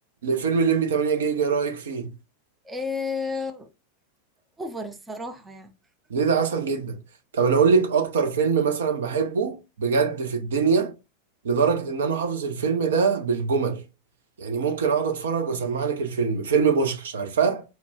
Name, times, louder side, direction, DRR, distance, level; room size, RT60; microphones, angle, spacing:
voice 1, 0.2-2.1 6.1-7.0 7.3-10.9 11.4-13.8 14.4-17.6, right 5 dB, 65° right, 0.6 m, -23 dB
voice 2, 2.6-3.7 4.6-5.7, left 4 dB, 10° right, 0.5 m, -32 dB
4.1 x 2.2 x 2.7 m
figure-of-eight pair, 90°, 0 cm